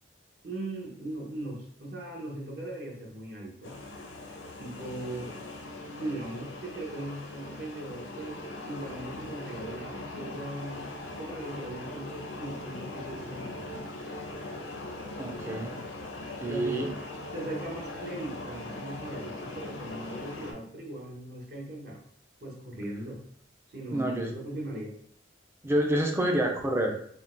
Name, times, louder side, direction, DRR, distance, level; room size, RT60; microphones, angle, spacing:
voice 1, 0.4-3.8 4.6-5.4 5.9-8.4 8.6-10.9 11.2-13.8 16.4-17.0 17.3-22.0 22.4-23.2 23.7-24.9, right 1 dB, 55° right, -2 dB, 0.9 m, -39 dB
sound 1, 3.6-20.5, left 2 dB, 85° left, 0.6 m, -40 dB
voice 2, 15.2-15.7 16.4-16.9 23.9-24.3 25.6-26.9, right 1 dB, 15° right, 2 dB, 0.3 m, -28 dB
3.6 x 2.2 x 2.4 m, 0.64 s
head